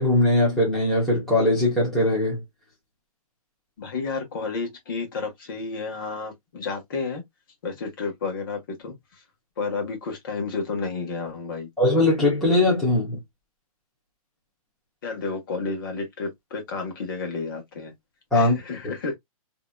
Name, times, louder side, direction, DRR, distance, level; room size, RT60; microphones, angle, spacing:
voice 1, 0.0-2.4 11.8-13.2 18.3-18.6, left 1 dB, ahead, 1.1 m, -20 dB
voice 2, 3.8-7.2 7.6-9.2 9.6-11.7 15.0-17.9 18.3-19.2, left 4 dB, 35° left, 1.5 m, -31 dB
3.9 x 2.9 x 2.3 m
hypercardioid pair, 175°, 19 cm